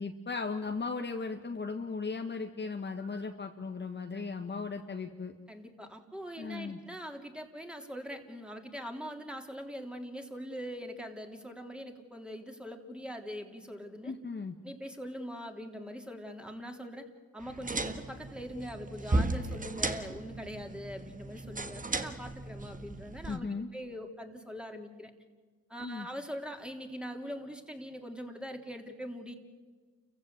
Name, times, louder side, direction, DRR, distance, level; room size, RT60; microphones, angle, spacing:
voice 1, 0.0-5.3 6.4-6.8 14.0-14.6 23.3-23.7 25.8-26.1, left 4 dB, 35° left, 4 dB, 1.7 m, -37 dB
voice 2, 3.0-3.3 5.5-14.1 14.6-17.1 17.3-23.5 23.7-25.1 25.7-29.4, equal, 5° right, 3 dB, 3.4 m, -42 dB
sound 1, 17.4-23.4, right 2 dB, 25° right, 1.7 m, -35 dB
29.0 x 16.0 x 8.2 m, 1.5 s
cardioid pair, 75°, 32 cm